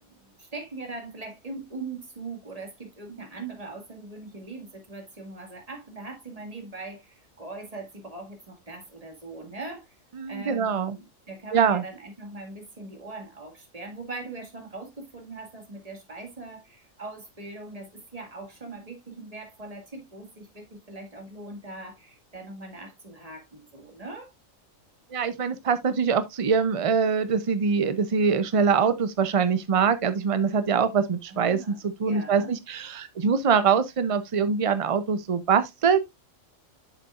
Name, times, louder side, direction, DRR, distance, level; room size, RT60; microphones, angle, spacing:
voice 1, 0.0-10.0 10.3-24.3 31.3-31.8 32.1-32.6, right 3 dB, 30° right, 1.9 m, -41 dB
voice 2, 10.2-11.0 11.5-11.8 25.1-36.1, right 6 dB, 60° right, 0.3 m, -23 dB
8.1 x 6.9 x 2.4 m
omnidirectional pair, 1.4 m